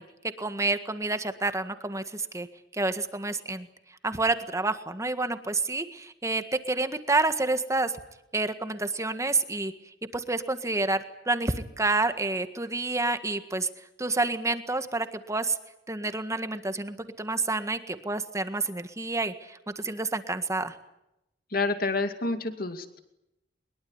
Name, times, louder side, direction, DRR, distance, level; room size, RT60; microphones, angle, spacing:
voice 1, 0.4-2.5 2.7-3.7 4.0-7.9 8.3-9.7 10.1-13.7 14.0-15.6 15.9-20.7, right 3 dB, 15° right, 9 dB, 1.7 m, -29 dB
voice 2, 21.5-23.0, left 3 dB, 55° left, 8 dB, 2.4 m, -28 dB
23.0 x 22.0 x 9.7 m, 0.86 s
head